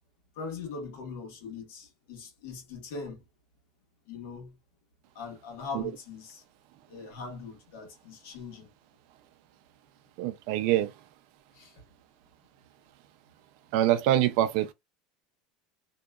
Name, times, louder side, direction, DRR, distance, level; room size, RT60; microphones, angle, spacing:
voice 1, 0.3-3.2 4.1-4.5 5.1-6.4 6.9-8.7 11.5-11.8, left 4 dB, 70° left, 1.3 m, -41 dB
voice 2, 10.2-10.9 13.7-14.7, right 13 dB, 55° right, 0.4 m, -24 dB
2.8 x 2.3 x 2.3 m
cardioid pair, 175°, 0 cm